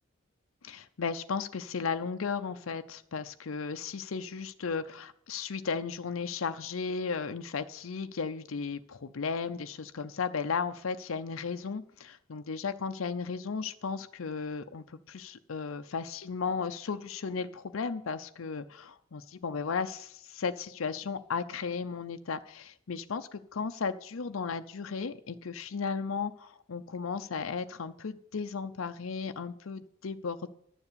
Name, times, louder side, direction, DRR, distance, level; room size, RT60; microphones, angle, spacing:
voice 1, 0.6-30.5, left 5 dB, 80° left, 9 dB, 0.6 m, -35 dB
11.5 x 7.2 x 6.8 m, 0.71 s
head